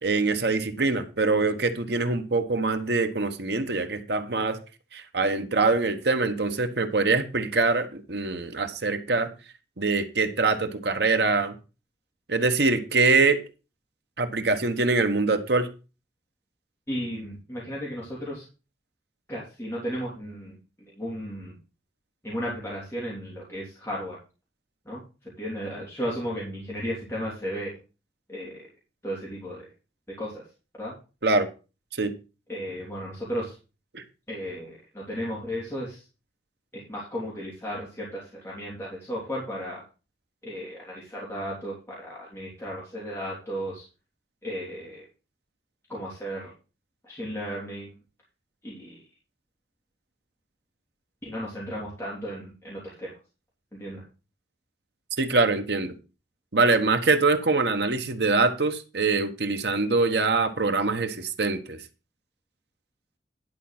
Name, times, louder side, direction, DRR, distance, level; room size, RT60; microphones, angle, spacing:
voice 1, 0.0-4.6 4.9-9.3 9.8-11.5 12.3-13.4 14.2-15.7 31.2-31.5 32.0-32.1 33.9-34.0 55.2-55.9 56.5-61.8, right 3 dB, 65° right, 8 dB, 1.2 m, -24 dB
voice 2, 16.9-18.4 19.3-20.6 20.9-21.6 22.2-24.2 24.8-27.8 28.3-28.7 29.0-29.7 30.2-30.5 30.7-30.9 32.5-33.5 34.3-36.0 36.7-39.8 40.4-43.8 44.4-45.0 45.9-46.5 47.0-47.9 48.6-49.0 51.2-53.1 53.8-54.0, equal, 15° left, -6 dB, 3.4 m, -34 dB
11.0 x 5.4 x 5.9 m, 0.32 s
head